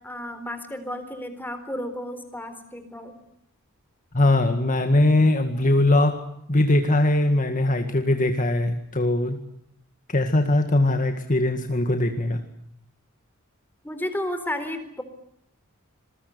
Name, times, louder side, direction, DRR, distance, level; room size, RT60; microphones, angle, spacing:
voice 1, 0.0-3.1 13.8-15.0, left 1 dB, 10° left, 8 dB, 4.1 m, -32 dB
voice 2, 4.1-6.2 6.5-9.4 10.1-12.4, left 1 dB, 40° left, 6 dB, 2.0 m, -21 dB
27.5 x 22.0 x 8.1 m, 0.73 s
head